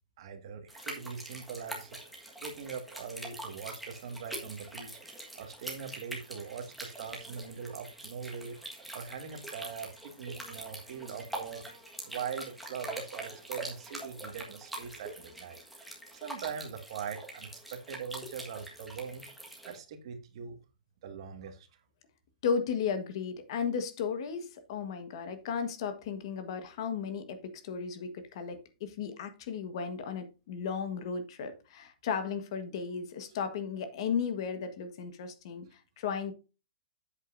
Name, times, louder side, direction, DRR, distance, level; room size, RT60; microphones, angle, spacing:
voice 1, 0.2-2.0 2.4-4.9 5.4-8.6 8.9-11.6 12.0-15.9 16.2-19.3 19.7-20.6 21.0-21.7, right 6 dB, 40° right, 1.8 m, -42 dB
sound 1, 0.7-19.8, right 1 dB, ahead, 1.5 m, -44 dB
voice 2, 22.4-36.3, left 6 dB, 35° left, 1.4 m, -35 dB
9.4 x 8.3 x 2.6 m
hypercardioid pair, 175°, 4 cm